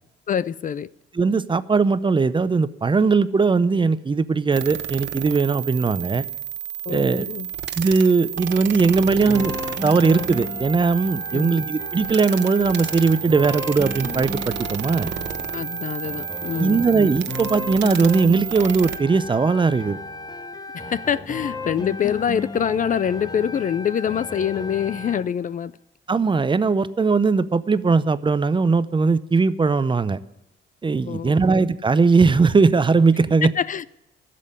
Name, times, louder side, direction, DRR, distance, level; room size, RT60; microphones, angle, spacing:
voice 1, 0.3-0.9 6.9-7.5 11.3-11.5 15.5-16.8 20.7-25.7 31.1-31.4 33.4-33.8, left 8 dB, 40° left, 0.4 m, -25 dB
voice 2, 1.1-6.2 6.9-7.3 7.8-9.6 9.8-15.1 16.6-20.0 26.1-30.2 30.8-33.5, right 4 dB, 25° right, 0.6 m, -19 dB
sound 1, 4.5-19.0, right 10 dB, 60° right, 1.0 m, -31 dB
sound 2, 9.3-25.3, left 3 dB, 20° left, 1.2 m, -34 dB
12.0 x 7.7 x 9.9 m
cardioid pair, 90°, 20 cm